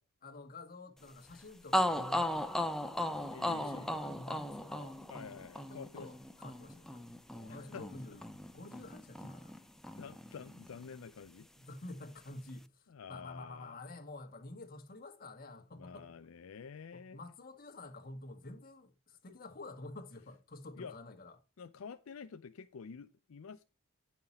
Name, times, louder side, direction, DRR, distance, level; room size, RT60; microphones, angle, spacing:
voice 1, 0.2-5.0 5.7-8.2 8.5-9.5 11.6-16.1 16.9-21.4, left 2 dB, 45° left, 1.5 m, -49 dB
sound 1, 1.3-1.4 1.7-9.6 9.8-11.0, equal, ahead, 0.5 m, -37 dB
voice 2, 3.3-3.9 5.1-6.1 7.5-7.9 9.9-11.5 12.9-13.8 15.7-17.2 20.7-21.0 21.6-23.6, left 6 dB, 75° left, 0.5 m, -49 dB
9.8 x 5.9 x 4.2 m
head